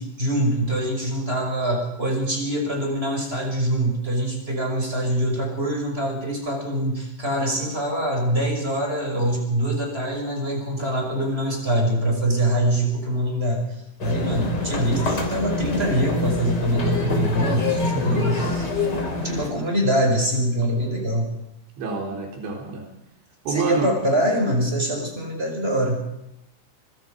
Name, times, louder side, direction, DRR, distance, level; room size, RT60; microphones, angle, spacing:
voice 1, 0.0-13.6 14.0-18.7 19.2-21.3 23.5-26.0, right 1 dB, 10° right, 2 dB, 5.8 m, -24 dB
sound 1, 14.0-19.5, left 2 dB, 25° left, 3.2 m, -25 dB
voice 2, 17.9-18.6 21.8-22.8 23.5-23.9, right 4 dB, 75° right, 1 dB, 6.3 m, -28 dB
24.5 x 24.0 x 5.3 m, 0.84 s
omnidirectional pair, 5.4 m